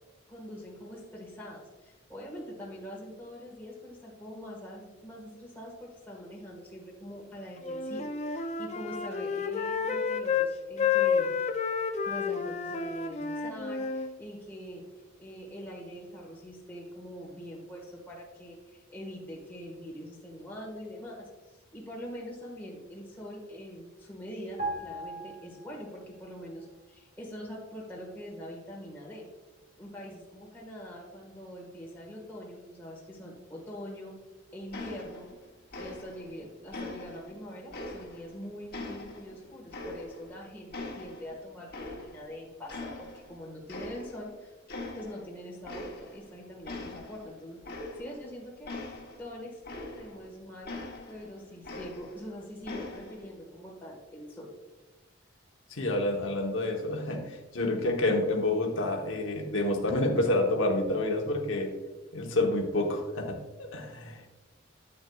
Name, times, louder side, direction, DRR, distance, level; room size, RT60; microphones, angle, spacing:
voice 1, 0.3-11.3 12.0-14.8 15.2-21.3 21.7-29.3 29.8-34.1 34.5-35.3 35.7-44.5 44.9-47.6 48.0-48.8 49.2-49.6 49.9-50.8 51.1-54.5, equal, 10° left, -3 dB, 1.5 m, -43 dB
Wind instrument woodwind instrument, 7.6-10.5 10.8-14.1, left 6 dB, 35° left, 0.4 m, -30 dB
sound 1, 24.6-26.2 26.5-26.7, right 2 dB, 40° right, 1.8 m, -38 dB
sound 2, 34.7-35.4 35.7-36.3 36.7-38.3 38.7-40.4 40.7-42.3 42.7-43.4 43.7-44.3 44.7-45.3 45.6-46.3 46.6-50.3 50.7-52.3 52.6-53.3, left 2 dB, 50° left, 1.2 m, -42 dB
voice 2, 55.7-61.7 62.1-64.3, left 2 dB, 80° left, 1 dB, 1.0 m, -28 dB
9.2 x 8.1 x 2.3 m, 1.1 s
head